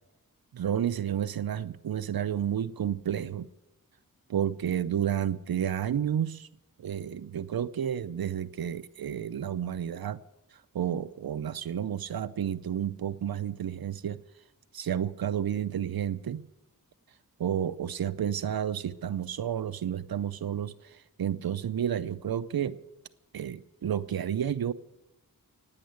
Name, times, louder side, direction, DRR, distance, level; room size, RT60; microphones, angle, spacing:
voice 1, 0.5-3.5 4.3-6.5 6.8-10.2 10.5-14.2 14.7-16.5 17.4-22.8 23.3-24.7, right 9 dB, 85° right, 0.6 m, -31 dB
16.5 x 9.5 x 8.1 m
wide cardioid pair, 85°, 35 cm